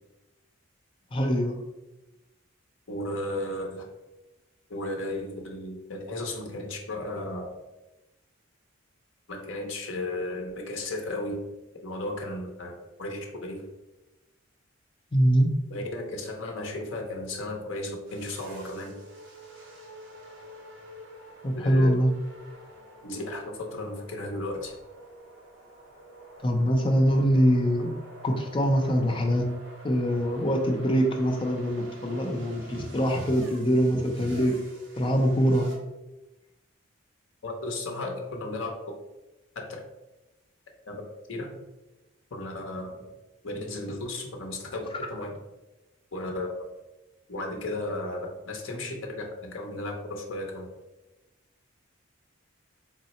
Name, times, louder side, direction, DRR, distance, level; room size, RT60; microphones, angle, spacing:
voice 1, 1.1-1.6 15.1-15.5 21.4-22.1 26.4-27.9 28.2-29.5 29.8-34.6 34.9-35.7, equal, 25° left, 3 dB, 0.4 m, -23 dB
voice 2, 2.9-3.9 4.7-7.5 9.3-11.4 11.8-13.7 15.7-19.0 21.6-22.0 23.0-23.4 23.7-24.8 27.6-27.8 37.4-38.7 39.6-39.7 40.9-41.0 41.3-41.6 42.3-43.1 43.4-45.3 46.1-46.5 47.3-48.2 48.4-48.9 49.4-50.7, left 1 dB, 65° left, 1 dB, 0.7 m, -34 dB
sound 1, 18.1-35.8, right 1 dB, 55° right, 0.7 m, -48 dB
3.8 x 2.0 x 4.0 m, 1.0 s
head